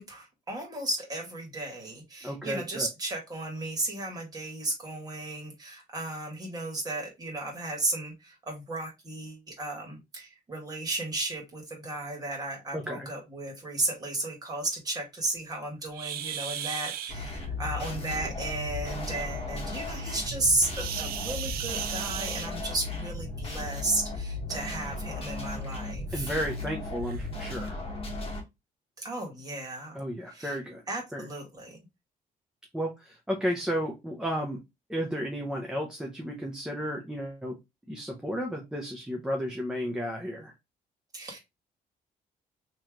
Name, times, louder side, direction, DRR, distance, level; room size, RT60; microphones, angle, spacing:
voice 1, 0.0-26.3 29.0-30.6 30.9-31.8 41.1-41.4, right 2 dB, 25° right, 0 dB, 1.8 m, -34 dB
voice 2, 2.2-2.9 12.7-13.1 26.1-27.8 29.9-30.8 31.1-31.3 32.7-34.6 34.9-37.6 37.9-40.5, equal, 5° right, 0 dB, 0.7 m, -33 dB
sound 1, 15.9-17.1 20.7-22.9 24.1-24.3 24.9-25.0 25.6-25.7 26.5-26.6 27.0-27.2, right 10 dB, 80° right, 0.5 m, -35 dB
sound 2, 17.1-28.4, left 2 dB, 40° left, 1.7 m, -36 dB
3.2 x 3.0 x 3.6 m, 0.22 s
cardioid pair, 145°, 15 cm